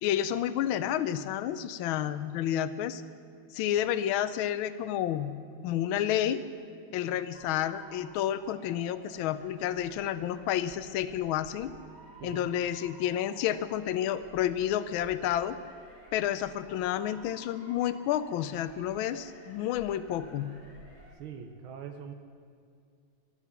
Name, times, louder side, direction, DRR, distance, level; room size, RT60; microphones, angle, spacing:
voice 1, 0.0-3.0 3.5-5.3 5.6-6.4 6.9-11.7 12.2-15.6 16.1-20.5, left 11 dB, 85° left, 14 dB, 1.4 m, -30 dB
Motor vehicle (road) / Siren, 7.3-21.1, right 1 dB, 55° right, 3.3 m, -54 dB
voice 2, 21.1-22.1, right 7 dB, 90° right, 6 dB, 1.6 m, -42 dB
12.5 x 12.0 x 6.9 m, 2.4 s
omnidirectional pair, 2.2 m